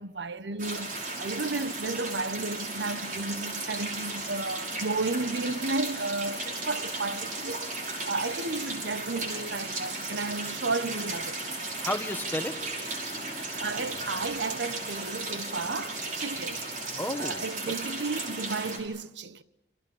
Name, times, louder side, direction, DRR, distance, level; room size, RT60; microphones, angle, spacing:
voice 1, 0.0-7.7 8.0-11.4 13.6-16.7 17.2-19.4, right 3 dB, 85° right, 1.1 m, -33 dB
sound 1, 0.6-18.8, right 2 dB, 45° right, 5.7 m, -35 dB
voice 2, 11.8-13.6 17.0-17.4, left 1 dB, 10° left, 1.3 m, -34 dB
28.5 x 27.0 x 7.1 m
head